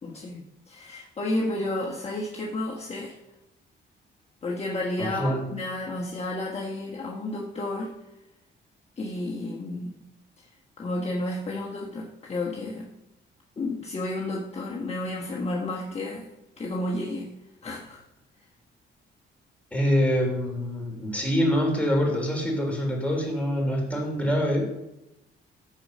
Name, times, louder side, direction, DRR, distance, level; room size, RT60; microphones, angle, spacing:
voice 1, 0.0-3.2 4.4-8.0 9.0-9.9 10.4-10.5 10.8-12.9 13.6-16.3 16.6-17.3 17.6-18.0, left 2 dB, 30° left, -2 dB, 1.4 m, -31 dB
voice 2, 5.0-5.4 19.7-24.8, equal, 5° left, -1 dB, 3.8 m, -25 dB
13.0 x 4.8 x 6.6 m, 0.91 s
cardioid pair, 90°, 20 cm